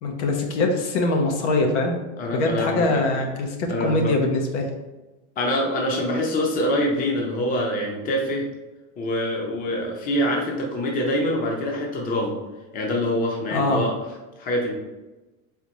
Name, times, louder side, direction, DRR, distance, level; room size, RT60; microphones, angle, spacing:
voice 1, 0.0-2.0 2.3-4.7 13.5-13.8, left 2 dB, 75° left, 3 dB, 1.0 m, -23 dB
voice 2, 2.2-3.0 3.7-4.1 5.4-8.5 9.0-12.4 12.7-13.9 14.4-14.7, left 1 dB, 25° left, 0 dB, 0.7 m, -25 dB
4.1 x 4.0 x 3.0 m, 1.1 s
supercardioid pair, 150°, 35 cm